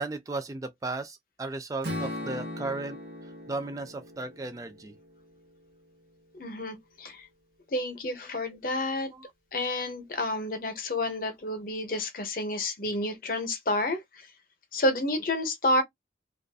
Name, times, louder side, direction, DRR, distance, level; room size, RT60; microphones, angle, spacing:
voice 1, 0.0-3.0 3.2-4.9 9.1-9.3, right 3 dB, 20° right, 0.3 m, -35 dB
Strum, 1.8-6.0, left 1 dB, 60° right, 0.9 m, -39 dB
voice 2, 6.4-7.3 7.7-9.1 9.5-14.0 14.7-15.8, left 1 dB, 50° left, 0.7 m, -29 dB
2.5 x 2.3 x 2.3 m
head